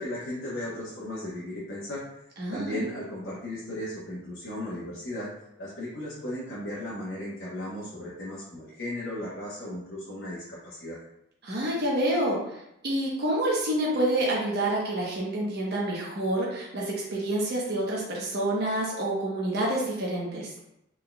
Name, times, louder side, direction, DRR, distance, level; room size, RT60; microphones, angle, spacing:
voice 1, 0.0-2.0 2.5-5.3 5.6-11.0, left 1 dB, 60° left, -8 dB, 1.0 m, -36 dB
voice 2, 2.4-2.8 11.4-20.5, right 1 dB, 50° right, -4 dB, 0.9 m, -28 dB
4.1 x 3.7 x 2.2 m, 0.81 s
head